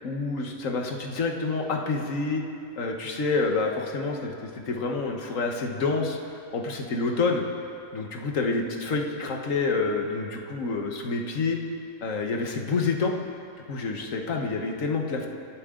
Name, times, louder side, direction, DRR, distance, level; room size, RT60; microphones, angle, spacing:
voice 1, 0.0-2.4 2.8-6.2 6.5-7.5 7.9-11.6 12.0-13.1 13.7-15.3, left 3 dB, 70° left, 2 dB, 1.7 m, -28 dB
25.0 x 12.0 x 3.8 m, 2.6 s
omnidirectional pair, 1.4 m